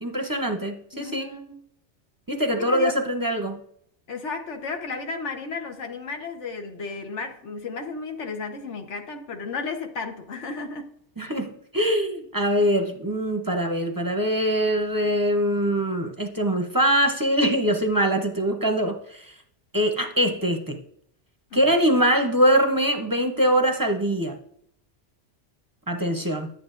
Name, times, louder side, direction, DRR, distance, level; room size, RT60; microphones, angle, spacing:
voice 1, 0.0-1.3 2.3-3.6 11.2-19.3 19.7-20.8 21.5-24.4 25.9-26.5, equal, 20° right, 5 dB, 0.6 m, -23 dB
voice 2, 0.9-1.6 2.5-2.9 4.1-10.9 21.5-21.6, left 4 dB, 75° left, 5 dB, 1.4 m, -33 dB
10.5 x 8.5 x 2.5 m, 0.68 s
omnidirectional pair, 1.2 m